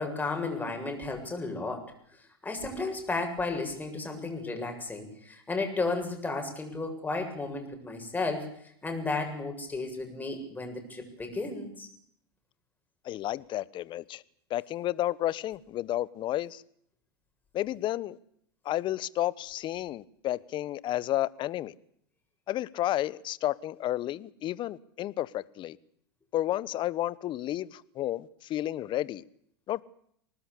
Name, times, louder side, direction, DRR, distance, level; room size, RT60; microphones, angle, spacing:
voice 1, 0.0-1.9 2.4-8.5 8.8-11.9, left 3 dB, 10° left, 7.6 m, -33 dB
voice 2, 13.0-14.2 14.5-16.6 17.5-18.2 18.6-21.7 22.5-25.8 26.3-29.2 29.7-29.8, left 14 dB, 35° left, 1.2 m, -31 dB
25.0 x 19.5 x 8.5 m
hypercardioid pair, 110°, 14 cm